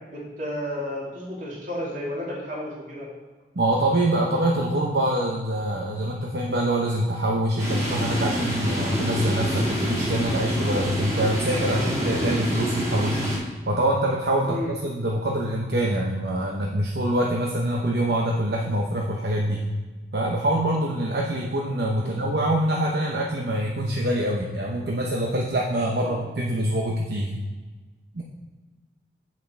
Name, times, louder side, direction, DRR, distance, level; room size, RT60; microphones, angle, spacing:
voice 1, 0.1-3.1 14.5-14.7 22.0-22.2 26.0-26.2, left 1 dB, 45° right, -5 dB, 2.9 m, -32 dB
voice 2, 3.5-13.2 13.7-19.6 20.1-27.3 28.1-28.2, right 1 dB, 65° right, -1 dB, 0.9 m, -25 dB
sound 1, 7.6-13.4, equal, 15° right, 2.6 m, -27 dB
7.6 x 7.6 x 4.5 m, 1.3 s
head